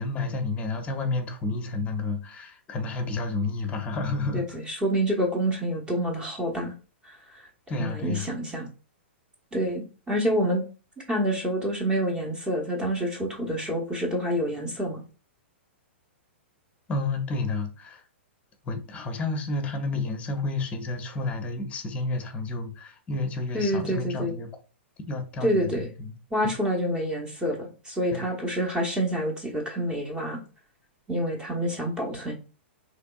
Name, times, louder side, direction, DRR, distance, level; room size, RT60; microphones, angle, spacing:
voice 1, 0.0-4.6 7.7-8.3 16.9-18.0 18.6-24.5 25.1-26.2 26.4-26.5 28.1-28.3, left 3 dB, 20° left, 0.7 m, -30 dB
voice 2, 4.3-6.7 7.0-7.2 7.8-8.7 9.5-10.6 11.1-15.0 23.5-24.3 25.4-25.9 26.3-30.4 31.1-32.3, equal, 15° right, 0.9 m, -27 dB
3.4 x 3.0 x 2.3 m
figure-of-eight pair, 110°, 6 cm